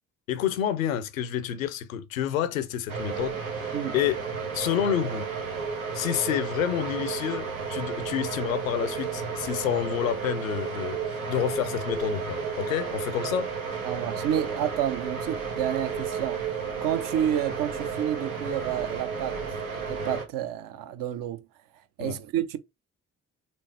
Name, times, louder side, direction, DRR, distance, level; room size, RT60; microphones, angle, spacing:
voice 1, 0.3-4.2 4.5-5.3 5.9-13.5 22.0-22.2, left 10 dB, 75° left, 0.6 m, -29 dB
sound 1, 2.9-20.2, right 5 dB, 80° right, 1.1 m, -32 dB
voice 2, 13.8-16.4 16.8-19.3 19.9-21.4 22.0-22.6, right 10 dB, 55° right, 0.7 m, -29 dB
4.3 x 3.2 x 3.2 m
figure-of-eight pair, 40°, 41 cm